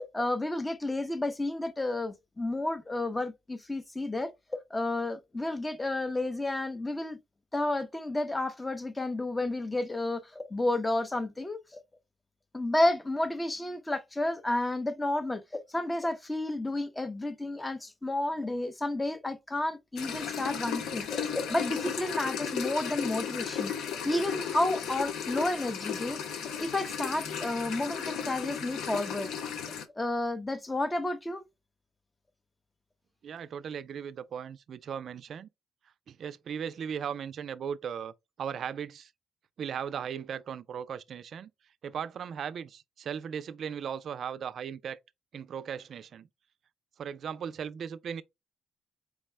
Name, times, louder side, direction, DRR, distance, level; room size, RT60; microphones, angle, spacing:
voice 1, 0.0-4.3 4.7-7.2 7.5-11.8 12.5-23.7 24.0-26.2 26.4-29.3 30.0-31.4, left 2 dB, 15° left, 0.6 m, -31 dB
sound 1, 20.0-29.8, left 7 dB, 85° left, 0.6 m, -35 dB
voice 2, 33.2-35.5 36.1-38.1 38.4-39.1 39.6-41.5 41.8-45.0 45.3-46.3 47.0-48.2, right 8 dB, 60° right, 0.3 m, -37 dB
4.6 x 2.0 x 3.2 m
cardioid pair, 90°, 0 cm